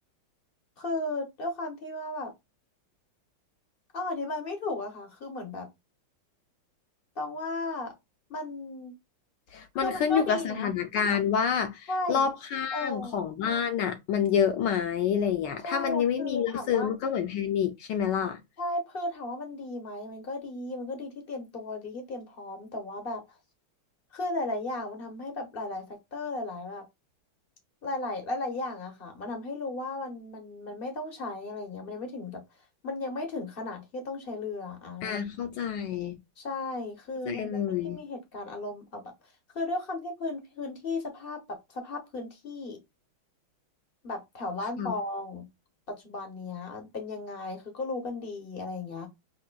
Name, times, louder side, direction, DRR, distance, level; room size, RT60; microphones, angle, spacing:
voice 1, 0.8-2.3 3.9-5.7 7.2-7.9 8.3-9.0 9.8-10.7 11.9-12.2 12.7-13.2 15.6-16.9 18.6-23.2 24.1-26.8 27.8-32.4 32.8-35.2 36.4-37.5 37.8-39.1 39.5-42.8 44.0-45.5 45.9-49.1, left 2 dB, 50° left, 0.6 m, -35 dB
voice 2, 9.5-18.4 35.0-36.2 37.3-38.0 44.8-44.9, left 8 dB, 70° left, 1.1 m, -28 dB
5.7 x 2.6 x 2.2 m
omnidirectional pair, 2.3 m